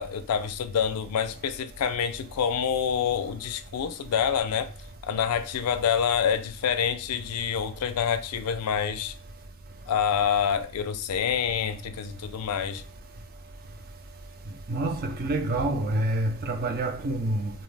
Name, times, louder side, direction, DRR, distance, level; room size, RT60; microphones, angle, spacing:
voice 1, 0.0-4.7 5.0-9.1 9.9-12.8, left 7 dB, 90° left, 0.4 m, -27 dB
voice 2, 14.7-17.5, right 2 dB, 40° right, 0.4 m, -27 dB
2.6 x 2.1 x 3.2 m
head